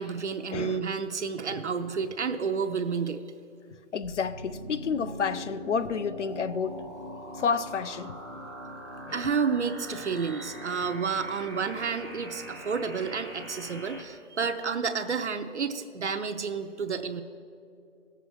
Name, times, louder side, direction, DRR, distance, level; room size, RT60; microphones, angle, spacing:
voice 1, 0.0-3.2 9.1-17.2, right 5 dB, 60° right, 0.6 m, -30 dB
voice 2, 0.5-0.9 3.9-6.9 7.3-8.2 9.1-9.3, left 6 dB, 65° left, 0.6 m, -30 dB
sound 1, 4.0-14.0, equal, 20° left, 0.7 m, -42 dB
17.0 x 7.0 x 4.6 m
hypercardioid pair, 180°, 38 cm